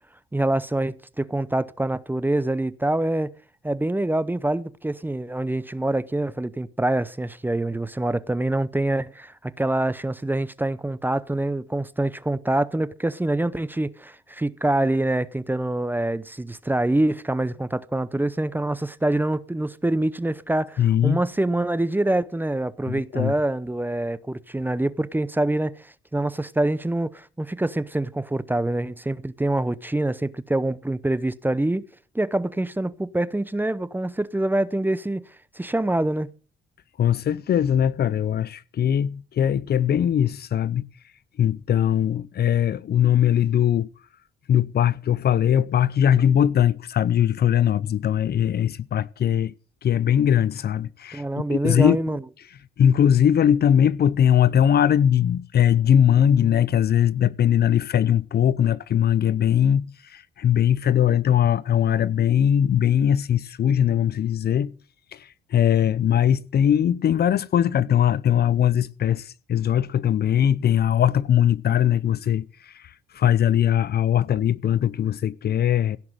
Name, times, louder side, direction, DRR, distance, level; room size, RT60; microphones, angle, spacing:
voice 1, 0.3-3.3 3.6-31.9 32.1-35.2 35.5-36.3 51.1-52.2, right 1 dB, 10° right, 0.7 m, -25 dB
voice 2, 20.8-21.2 22.9-23.3 37.0-40.9 41.4-43.9 44.5-49.5 49.8-51.2 51.5-52.2 52.8-64.7 65.1-72.8 73.1-76.0, left 9 dB, 55° left, 0.7 m, -20 dB
16.5 x 6.0 x 9.0 m
cardioid pair, 90°, 20 cm